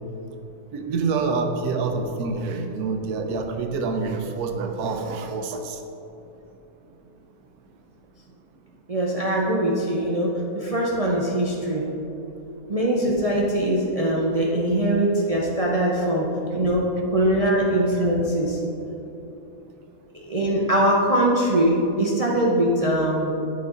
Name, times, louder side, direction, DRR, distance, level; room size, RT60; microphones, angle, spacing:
voice 1, 0.7-5.8, right 4 dB, 85° right, 4 dB, 1.2 m, -27 dB
voice 2, 8.9-11.9 12.7-18.6 20.3-23.3, right 1 dB, 45° right, -3 dB, 0.4 m, -22 dB
8.4 x 5.3 x 3.8 m, 3.0 s
omnidirectional pair, 1.6 m